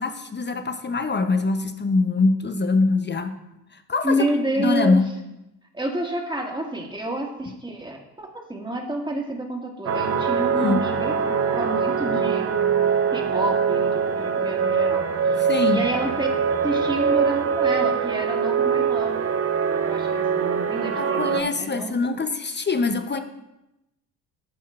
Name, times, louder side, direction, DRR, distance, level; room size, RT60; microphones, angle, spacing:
voice 1, 0.0-3.3 3.7-4.2 4.6-5.1 10.5-10.8 15.4-15.8 20.9-23.2, left 3 dB, 20° left, 8 dB, 0.6 m, -23 dB
voice 2, 4.0-5.0 5.7-12.5 13.1-15.4 15.7-16.3 16.6-19.2 19.8-21.9, right 1 dB, 10° right, 0 dB, 1.7 m, -29 dB
sound 1, 9.9-21.4, right 6 dB, 30° right, 0.8 m, -23 dB
11.5 x 5.5 x 2.4 m, 0.92 s
hypercardioid pair, 55°, 49 cm